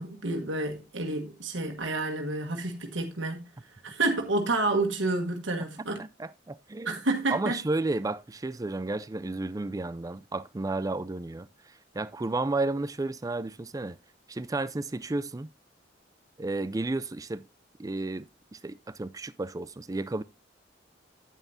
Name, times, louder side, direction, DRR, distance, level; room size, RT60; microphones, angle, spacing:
voice 1, 0.0-3.4 3.8-6.0 6.8-7.6, right 2 dB, 75° right, 1.5 m, -29 dB
voice 2, 6.0-7.0 7.3-14.0 14.3-15.5 16.4-17.5 17.8-18.3 18.5-20.2, right 2 dB, 20° right, 0.4 m, -32 dB
9.4 x 8.9 x 2.6 m
head